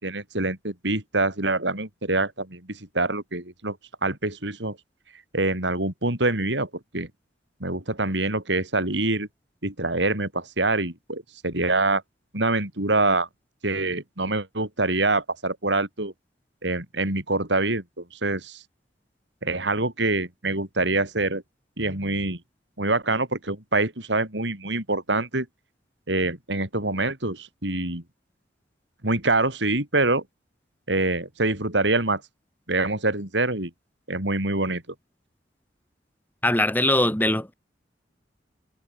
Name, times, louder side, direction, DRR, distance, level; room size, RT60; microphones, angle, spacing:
voice 1, 0.0-4.8 5.3-7.1 7.6-9.3 9.6-12.0 12.3-13.3 13.6-16.1 16.6-18.6 19.4-21.4 21.8-22.4 22.8-25.5 26.1-28.0 29.0-30.2 30.9-32.2 32.7-33.7 34.1-34.8, right 2 dB, 75° right, 5.5 m, -25 dB
voice 2, 36.4-37.5, left 1 dB, 10° left, 2.5 m, -21 dB
head